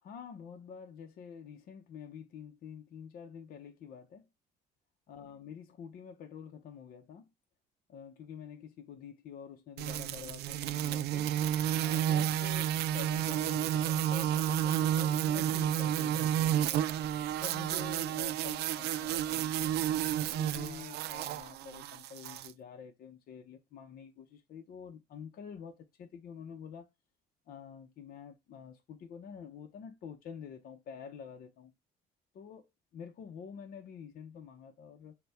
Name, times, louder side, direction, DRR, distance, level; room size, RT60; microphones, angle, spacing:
voice 1, 0.0-4.3 5.1-7.3 7.9-11.3 11.8-16.9 17.4-19.7 20.3-26.9 27.5-31.7 32.3-32.7 32.9-35.2, left 7 dB, 60° left, 0.8 m, -48 dB
sound 1, 9.8-22.5, right 11 dB, 75° right, 0.4 m, -31 dB
6.7 x 2.3 x 3.5 m
cardioid pair, 110°, 17 cm